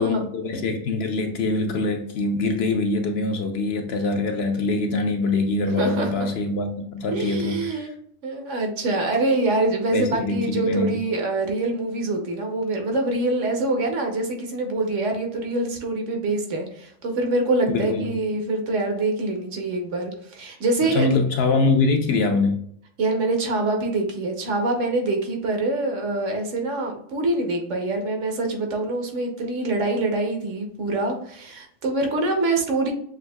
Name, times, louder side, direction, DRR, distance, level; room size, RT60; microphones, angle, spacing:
voice 1, 0.0-7.9 9.9-11.0 17.7-18.1 20.8-22.6, left 3 dB, 65° left, 5 dB, 0.8 m, -23 dB
voice 2, 5.8-6.1 7.1-7.9 8.2-21.1 23.0-32.9, right 2 dB, 75° right, 3 dB, 1.2 m, -25 dB
6.3 x 2.6 x 2.2 m, 0.67 s
omnidirectional pair, 1.3 m